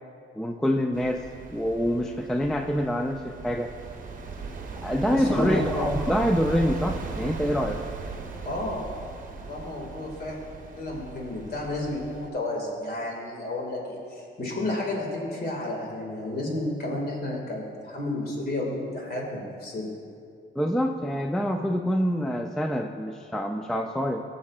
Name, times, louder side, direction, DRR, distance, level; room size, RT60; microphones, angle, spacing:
voice 1, 0.3-1.2 1.5-3.7 4.8-7.8 20.6-24.2, equal, 5° left, 5 dB, 0.3 m, -26 dB
sound 1, 0.9-12.3, right 4 dB, 40° right, 0.9 m, -38 dB
voice 2, 5.0-5.9 8.4-8.9 9.4-10.4 10.8-19.9, left 1 dB, 50° left, -2 dB, 2.0 m, -31 dB
16.0 x 6.5 x 2.4 m, 2.4 s
cardioid pair, 105°, 21 cm